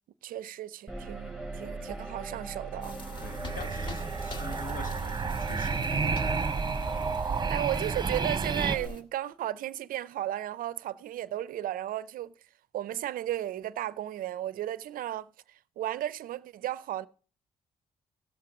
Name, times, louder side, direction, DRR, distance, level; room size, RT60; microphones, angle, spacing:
voice 1, 0.2-3.0 7.5-12.3 12.7-17.1, right 13 dB, 70° right, 0.5 m, -34 dB
sound 1, 0.9-8.9, right 3 dB, ahead, 5.2 m, -37 dB
sound 2, 2.8-9.0, left 2 dB, 30° left, 1.7 m, -46 dB
sound 3, 3.0-8.8, right 5 dB, 30° right, 0.6 m, -32 dB
voice 2, 3.2-6.9, left 4 dB, 65° left, 1.4 m, -45 dB
16.5 x 7.4 x 3.7 m
supercardioid pair, 60°, 15 cm